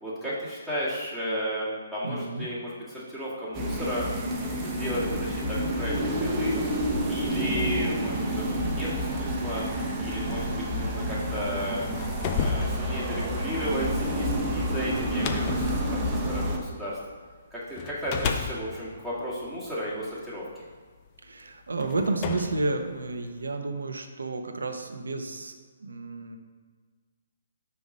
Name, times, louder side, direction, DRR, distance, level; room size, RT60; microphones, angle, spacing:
voice 1, 0.0-4.1 4.6-9.6 10.0-11.8 12.3-17.0 17.5-20.4, equal, 5° left, -11 dB, 1.9 m, -34 dB
voice 2, 2.0-2.5 21.2-25.6 25.8-26.4, right 3 dB, 70° right, 5 dB, 0.8 m, -31 dB
sound 1, 3.5-16.6, equal, 20° right, 1.0 m, -29 dB
sound 2, 11.8-17.2 17.8-20.2 21.1-21.2 21.8-23.5, left 5 dB, 30° left, 0.5 m, -34 dB
5.5 x 4.7 x 5.3 m, 1.5 s
figure-of-eight pair, 135°, 0 cm